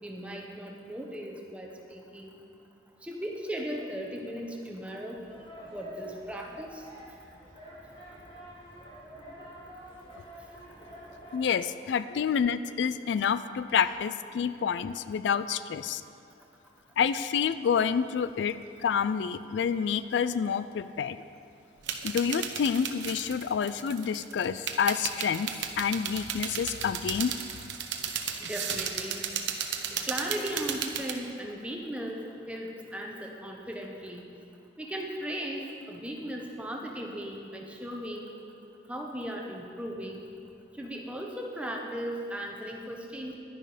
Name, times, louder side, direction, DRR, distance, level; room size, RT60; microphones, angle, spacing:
voice 1, 0.0-2.4 3.0-5.2 5.7-6.9 28.4-29.3 30.1-34.3 34.8-38.3 38.9-40.3 40.7-43.4, equal, 5° right, 0 dB, 1.0 m, -37 dB
sound 1, 5.1-11.5, equal, 30° left, 3.0 m, -47 dB
voice 2, 11.3-16.0 17.0-21.2 22.0-27.3, left 7 dB, 80° left, 14 dB, 0.3 m, -28 dB
sound 2, 21.8-31.1, right 7 dB, 90° right, 0.9 m, -35 dB
11.0 x 10.5 x 5.0 m, 2.5 s
head